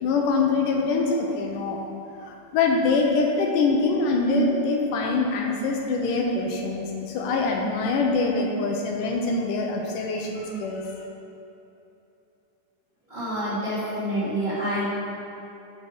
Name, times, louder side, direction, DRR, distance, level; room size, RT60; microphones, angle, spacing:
voice 1, 0.0-1.8 2.2-10.8, left 3 dB, 80° left, 1 dB, 2.2 m, -24 dB
voice 2, 13.1-14.9, equal, 25° right, -11 dB, 1.0 m, -27 dB
7.1 x 6.1 x 5.0 m, 2.8 s
omnidirectional pair, 4.1 m